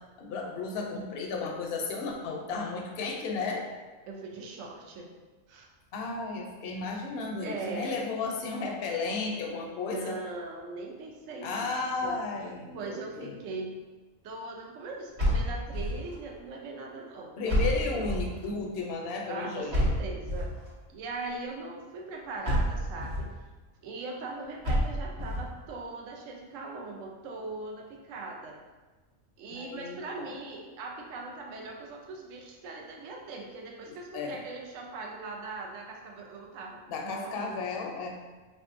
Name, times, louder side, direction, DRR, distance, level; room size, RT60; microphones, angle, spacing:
voice 1, 0.2-3.7 5.9-10.2 11.4-13.3 17.4-19.9 29.5-30.3 33.9-34.4 36.9-38.1, left 4 dB, 65° left, 1 dB, 0.7 m, -34 dB
voice 2, 4.1-5.1 5.5-5.7 7.4-8.1 9.6-11.7 12.0-12.2 12.7-13.7 14.2-18.1 19.3-20.5 20.9-23.3 23.8-28.6 29.4-37.5, right 3 dB, 80° right, 0 dB, 0.9 m, -40 dB
sound 1, 15.2-16.1 17.5-18.5 19.7-20.7 22.4-23.3 24.6-25.5, equal, 55° right, 1.1 m, -28 dB
3.6 x 2.6 x 2.4 m, 1.3 s
omnidirectional pair, 1.3 m